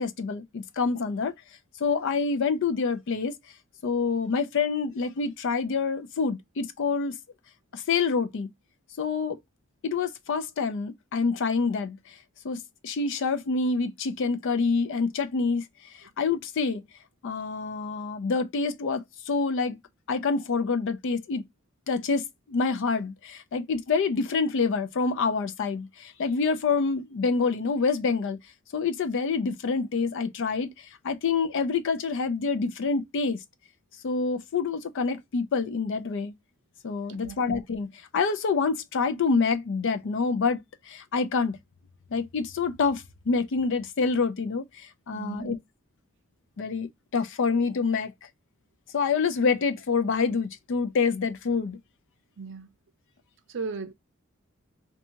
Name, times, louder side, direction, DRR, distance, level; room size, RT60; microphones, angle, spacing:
voice 1, 0.0-1.3 1.8-3.4 3.8-7.2 7.7-8.5 9.0-9.4 9.8-12.0 12.4-15.6 15.9-16.8 17.2-19.8 20.1-21.4 21.9-28.4 28.7-33.4 34.0-36.3 36.8-40.6 40.9-41.6 42.1-45.6 46.6-48.1 48.9-51.8, left 4 dB, 60° left, 0.4 m, -27 dB
voice 2, 45.1-45.5 52.4-52.7 53.5-53.9, right 4 dB, 55° right, 0.5 m, -35 dB
2.7 x 2.3 x 2.7 m
head